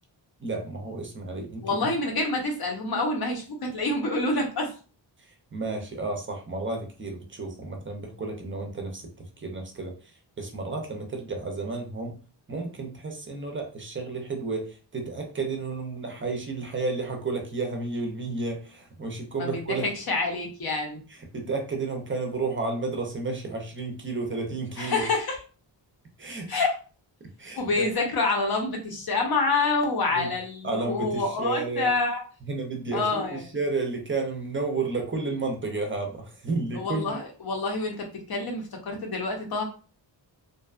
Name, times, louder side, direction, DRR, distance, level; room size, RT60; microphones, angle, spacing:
voice 1, 0.4-1.9 5.2-12.2 12.5-19.9 21.1-25.1 26.2-26.6 27.4-27.9 30.1-30.3 30.6-31.9 32.5-37.2, right 3 dB, 25° right, 2 dB, 0.5 m, -32 dB
voice 2, 1.6-4.7 19.4-21.0 24.8-25.4 26.5-26.7 27.5-32.2 32.9-33.4 36.7-39.6, left 3 dB, 55° left, 2 dB, 0.7 m, -27 dB
2.6 x 2.2 x 2.4 m, 0.37 s
wide cardioid pair, 130°, 45 cm